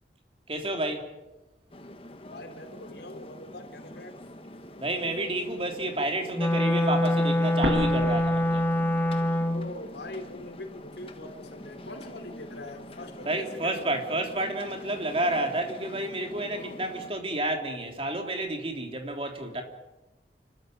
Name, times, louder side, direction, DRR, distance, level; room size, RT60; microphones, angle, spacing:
voice 1, 0.5-1.1 4.8-8.7 13.2-19.6, right 1 dB, 30° right, 3.5 m, -30 dB
sound 1, 1.7-17.1, left 1 dB, 30° left, 1.5 m, -45 dB
voice 2, 2.3-4.2 9.5-13.9, left 1 dB, 75° left, 3.9 m, -42 dB
Wind instrument woodwind instrument, 6.3-9.7, left 1 dB, 10° left, 0.7 m, -24 dB
sound 2, 7.6-9.6 9.9-10.0 10.7-11.6, equal, 65° right, 6.7 m, -34 dB
29.5 x 13.5 x 9.3 m
head